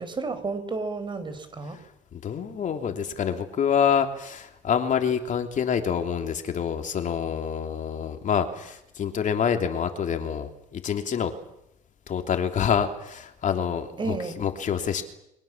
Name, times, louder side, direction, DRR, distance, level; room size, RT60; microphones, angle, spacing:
voice 1, 0.0-1.8 14.0-14.4, right 3 dB, 30° right, 11 dB, 4.5 m, -31 dB
voice 2, 2.1-11.3 12.1-15.0, left 7 dB, 50° left, 6 dB, 3.2 m, -27 dB
29.5 x 24.0 x 7.4 m, 0.79 s
cardioid pair, 110°, 17 cm